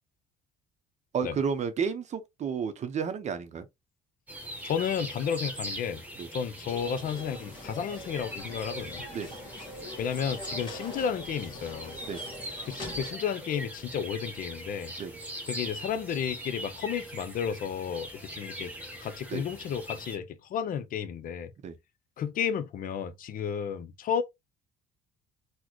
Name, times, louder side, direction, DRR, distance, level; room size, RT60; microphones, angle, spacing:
voice 1, 1.1-3.7 6.2-6.3 9.1-9.3 12.1-12.2 15.0-15.2 19.3-19.4 21.6-21.7, right 6 dB, 45° right, 0.6 m, -32 dB
sound 1, 4.3-20.2, right 1 dB, 10° right, 1.2 m, -41 dB
voice 2, 4.6-6.0 6.3-9.0 10.0-12.0 12.7-14.9 15.5-18.7 19.0-21.5 22.2-24.2, left 8 dB, 55° left, 0.6 m, -32 dB
sound 2, 6.7-13.1, left 1 dB, 30° left, 1.6 m, -44 dB
4.0 x 2.1 x 3.0 m
cardioid pair, 110°, 17 cm